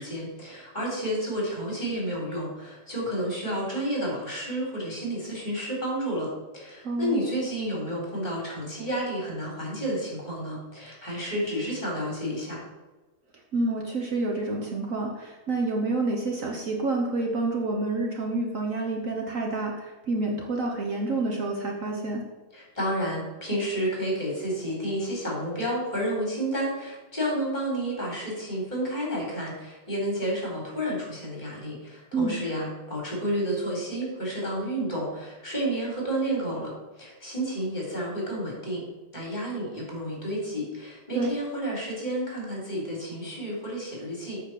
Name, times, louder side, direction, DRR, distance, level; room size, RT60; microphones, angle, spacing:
voice 1, 0.0-6.3 6.5-12.6 22.5-36.7 37.0-38.8 39.1-44.4, right 1 dB, 25° left, -3 dB, 3.8 m, -30 dB
voice 2, 6.8-7.2 13.5-22.2 32.1-32.4 41.1-41.3, right 2 dB, 55° right, 1 dB, 1.4 m, -28 dB
8.5 x 5.0 x 7.4 m, 1.2 s
omnidirectional pair, 1.8 m